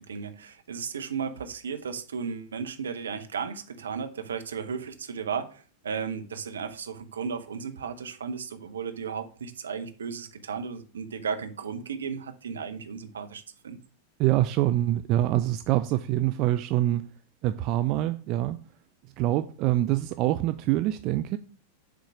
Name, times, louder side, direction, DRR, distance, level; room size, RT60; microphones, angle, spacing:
voice 1, 0.0-13.8, right 6 dB, 70° right, 0.8 m, -35 dB
voice 2, 14.2-17.1 17.4-18.6 19.2-21.4, right 14 dB, 40° right, 0.4 m, -25 dB
7.0 x 3.8 x 5.8 m
figure-of-eight pair, 90°, 0 cm